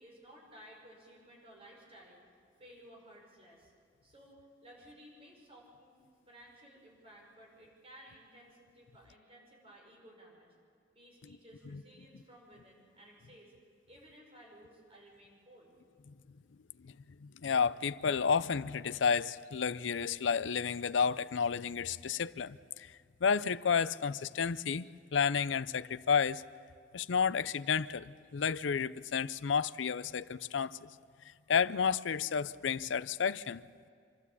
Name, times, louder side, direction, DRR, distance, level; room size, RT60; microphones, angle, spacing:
voice 1, 0.0-2.2 2.6-3.7 4.0-6.0 6.3-10.5 10.9-13.5 13.9-15.8, equal, 30° right, 5.6 m, -56 dB
voice 2, 17.2-22.9 23.2-24.8 25.1-26.4 26.9-30.9 31.5-33.6, left 6 dB, 70° left, 0.5 m, -31 dB
26.5 x 12.5 x 8.4 m
head